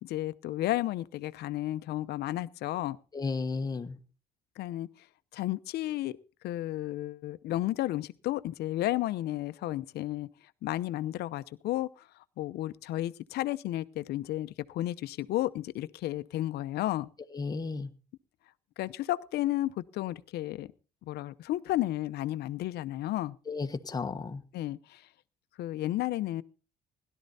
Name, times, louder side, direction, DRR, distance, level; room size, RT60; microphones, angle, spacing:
voice 1, 0.0-3.0 4.6-4.9 5.3-6.2 6.4-10.3 10.6-12.1 12.4-17.1 18.8-20.7 21.1-23.4 24.5-25.0 25.6-26.4, left 15 dB, 75° left, 0.8 m, -32 dB
voice 2, 3.1-4.0 17.3-17.9 23.5-24.4, left 4 dB, 20° left, 1.4 m, -33 dB
17.0 x 12.0 x 4.2 m
cardioid pair, 110°, 17 cm